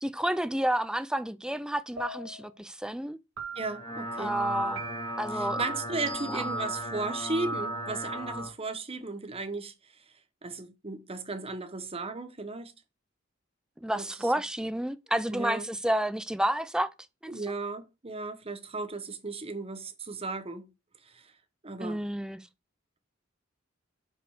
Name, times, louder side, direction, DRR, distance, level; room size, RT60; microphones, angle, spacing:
voice 1, 0.0-3.2 4.2-4.8 5.2-5.6 6.3-6.4 13.8-16.9 17.2-17.3 21.8-22.4, right 1 dB, 5° right, 0.4 m, -30 dB
sound 1, 2.0-2.5 3.4-3.9 4.8-5.3 6.1-6.6, right 2 dB, 70° right, 1.5 m, -42 dB
sound 2, 3.5-8.5, right 1 dB, 25° left, 2.2 m, -35 dB
voice 2, 3.5-4.4 5.3-9.7 10.4-12.7 14.0-14.3 15.3-15.7 17.3-20.7 21.1-21.3 21.6-22.0, right 3 dB, 30° right, 1.1 m, -35 dB
5.9 x 5.1 x 4.9 m
head